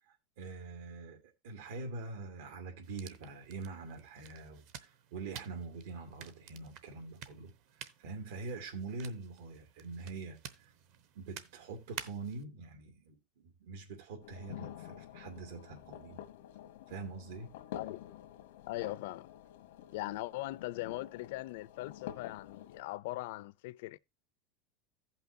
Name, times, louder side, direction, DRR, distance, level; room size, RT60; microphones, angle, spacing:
voice 1, 0.1-7.5 8.0-10.7 11.1-16.2 16.9-17.5, right 3 dB, 85° right, 2.4 m, -44 dB
sound 1, 2.8-12.4, right 9 dB, 45° right, 0.8 m, -51 dB
sound 2, 14.2-22.8, left 11 dB, 90° left, 1.0 m, -49 dB
voice 2, 18.7-19.3 19.9-24.0, left 18 dB, 65° left, 0.4 m, -40 dB
15.5 x 5.7 x 2.7 m
supercardioid pair, 175°, 0 cm